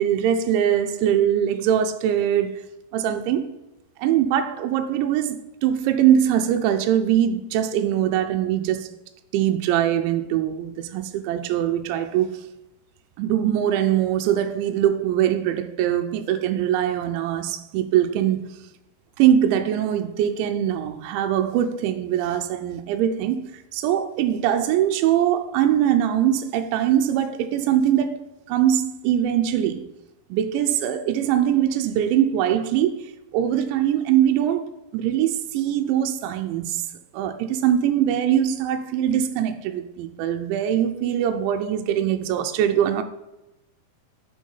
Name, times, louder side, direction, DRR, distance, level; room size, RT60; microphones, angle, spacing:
voice 1, 0.0-2.5 2.9-3.5 4.0-8.9 9.3-12.4 13.2-18.4 19.2-29.9 30.3-36.8 37.1-43.0, right 10 dB, 85° right, 2.9 m, -22 dB
6.5 x 6.3 x 5.5 m
omnidirectional pair, 5.3 m